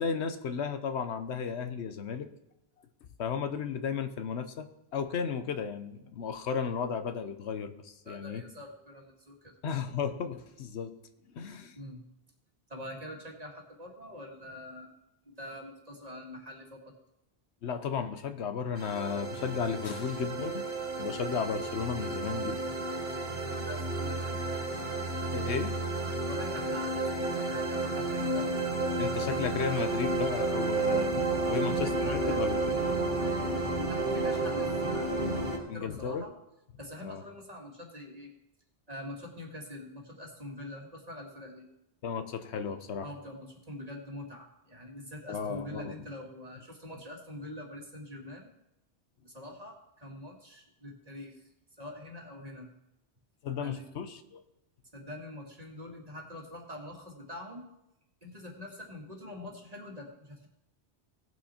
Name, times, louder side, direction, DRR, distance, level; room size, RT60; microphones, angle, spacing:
voice 1, 0.0-2.3 3.2-8.4 9.6-10.9 11.3-11.8 17.6-20.7 21.0-22.6 25.3-25.8 29.0-32.7 35.7-36.2 37.0-37.2 42.0-43.1 45.3-45.9 53.4-54.4, left 6 dB, 80° left, 9 dB, 1.1 m, -34 dB
voice 2, 8.0-9.5 11.8-12.0 12.7-14.9 15.3-16.9 23.3-24.3 26.3-28.6 31.4-36.3 36.8-38.3 38.9-41.7 43.0-48.5 49.2-51.4 51.8-52.7 53.6-53.9 54.9-57.6 58.2-60.5, left 1 dB, 35° right, 0 dB, 2.0 m, -45 dB
sound 1, 18.8-35.6, right 2 dB, 60° right, 2.0 m, -31 dB
17.5 x 6.2 x 4.2 m, 0.88 s
omnidirectional pair, 1.1 m